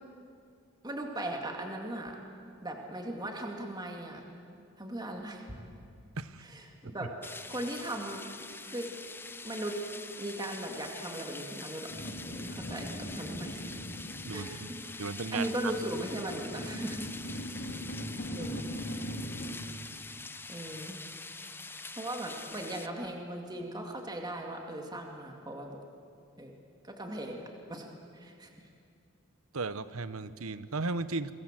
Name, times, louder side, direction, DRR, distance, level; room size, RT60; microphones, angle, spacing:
voice 1, 0.8-2.2 2.6-4.3 4.8-5.4 6.4-7.1 7.5-8.2 8.7-8.9 9.4-9.8 10.2-13.8 14.3-17.1 17.3-17.4 18.2-18.6 20.5-21.0 22.0-25.8 26.4-26.6 26.8-27.9 28.1-28.5, right 1 dB, 20° right, 2 dB, 2.4 m, -38 dB
sound 1, 7.2-22.9, left 3 dB, 10° left, 0.7 m, -45 dB
sound 2, 11.9-19.5, equal, 55° left, 3.0 m, -41 dB
voice 2, 14.2-14.7 15.0-15.7 29.5-31.3, right 3 dB, 85° right, 14 dB, 1.0 m, -35 dB
28.0 x 24.0 x 7.6 m, 2.4 s
head